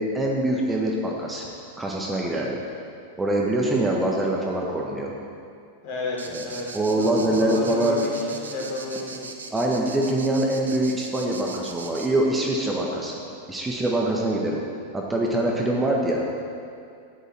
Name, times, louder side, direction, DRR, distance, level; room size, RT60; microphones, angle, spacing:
voice 1, 0.0-1.5 1.8-2.6 3.2-5.1 6.3-6.4 6.7-8.0 9.5-13.2 13.5-14.6 14.9-16.2, right 1 dB, 10° right, -2 dB, 1.5 m, -24 dB
voice 2, 5.8-9.2, left 2 dB, 45° left, -3 dB, 3.6 m, -32 dB
sound 1, 6.2-12.1, right 4 dB, 75° right, 1.1 m, -39 dB
13.5 x 10.0 x 4.6 m, 2.4 s
figure-of-eight pair, 90°, 0 cm